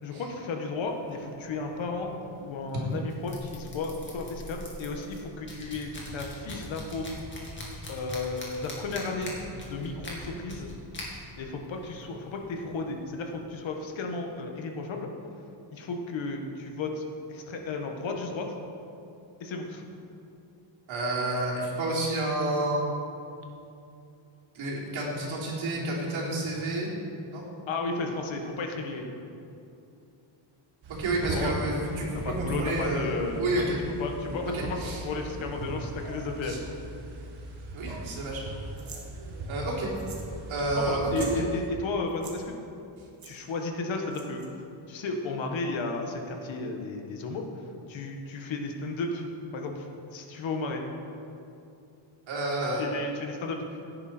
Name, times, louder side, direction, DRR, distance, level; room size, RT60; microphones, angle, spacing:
voice 1, 0.0-2.1 2.4-7.1 7.9-10.7 11.4-15.1 15.7-17.0 17.3-18.5 19.4-19.8 27.7-29.1 31.3-33.7 34.0-36.6 40.8-42.5 43.2-44.4 44.9-47.5 47.9-49.3 49.5-50.8 52.8-53.6, left 3 dB, 70° left, 3 dB, 1.7 m, -33 dB
sound 1, 0.8-13.4, left 1 dB, 25° left, 2.4 m, -44 dB
voice 2, 20.9-22.8 24.5-26.9 27.3-27.4 30.9-33.1 33.4-33.8 34.5-35.0 36.4-36.6 37.7-38.4 39.5-39.9 40.5-41.3 52.3-52.8, right 2 dB, 75° right, -4 dB, 3.6 m, -30 dB
sound 2, 30.8-41.7, right 2 dB, 55° right, 1.6 m, -38 dB
sound 3, 38.8-39.1 39.9-40.3 40.6-40.7 41.0-41.4 42.1-42.4 43.2-43.3 44.1-44.5, right 4 dB, 35° right, 1.6 m, -44 dB
16.0 x 9.8 x 4.5 m, 2.7 s
wide cardioid pair, 170°, 48 cm